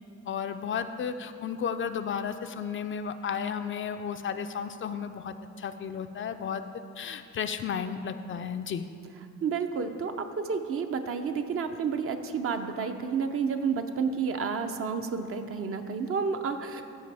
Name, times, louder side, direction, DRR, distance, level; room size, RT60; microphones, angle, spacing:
voice 1, 0.3-6.7 7.0-8.8, left 7 dB, 45° left, 9 dB, 0.4 m, -33 dB
voice 2, 9.4-16.8, right 5 dB, 50° right, 7 dB, 0.6 m, -30 dB
13.5 x 5.0 x 3.4 m, 2.5 s
cardioid pair, 90°, 30 cm